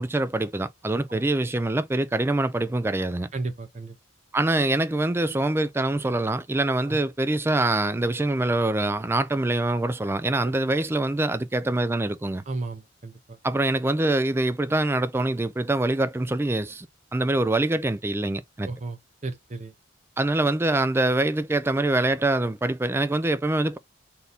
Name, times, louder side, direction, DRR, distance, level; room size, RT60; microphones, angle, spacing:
voice 1, 0.0-3.3 4.3-12.4 13.4-16.9 17.1-18.7 20.2-23.8, right 2 dB, 10° right, 0.3 m, -24 dB
voice 2, 3.3-3.9 6.9-7.0 10.4-10.6 12.5-13.4 18.6-19.7, right 3 dB, 35° right, 0.7 m, -34 dB
4.1 x 2.7 x 3.4 m
head